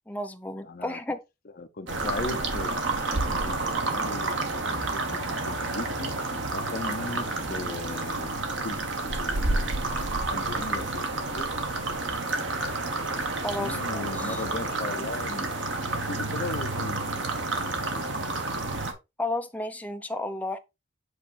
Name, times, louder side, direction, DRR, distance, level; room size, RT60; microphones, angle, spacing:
voice 1, 0.1-1.2 13.4-14.4 19.2-20.6, left 1 dB, 10° left, 0.6 m, -33 dB
voice 2, 0.6-1.0 1.6-4.5 4.9-6.1 6.5-8.3 8.6-11.9 13.6-18.1, left 3 dB, 50° left, 0.6 m, -38 dB
sound 1, 1.9-18.9, right 2 dB, 70° right, 1.3 m, -30 dB
8.0 x 3.1 x 4.1 m
head